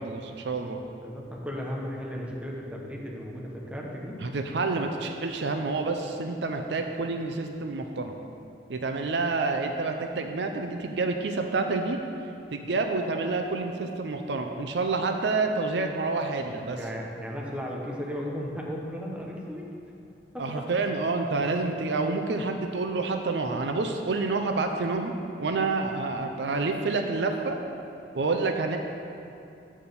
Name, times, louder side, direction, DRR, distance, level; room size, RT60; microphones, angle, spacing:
voice 1, 0.0-0.8 4.2-8.2 8.7-12.0 12.5-16.8 20.4-25.1 25.4-27.6 28.1-28.8, right 3 dB, 75° right, 5 dB, 0.5 m, -28 dB
voice 2, 1.0-4.2 16.7-19.7 20.3-20.6, equal, 5° right, -2 dB, 1.0 m, -35 dB
8.3 x 4.3 x 6.8 m, 2.7 s
head